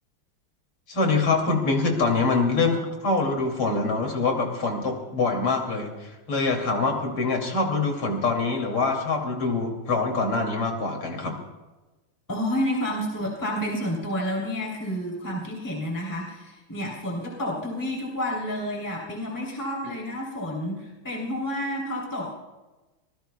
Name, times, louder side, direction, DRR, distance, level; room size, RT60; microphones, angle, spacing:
voice 1, 0.9-11.4, left 3 dB, 70° left, 2 dB, 3.6 m, -25 dB
voice 2, 12.3-22.3, equal, 10° left, -3 dB, 3.0 m, -30 dB
25.0 x 19.5 x 2.3 m, 1.1 s
omnidirectional pair, 2.4 m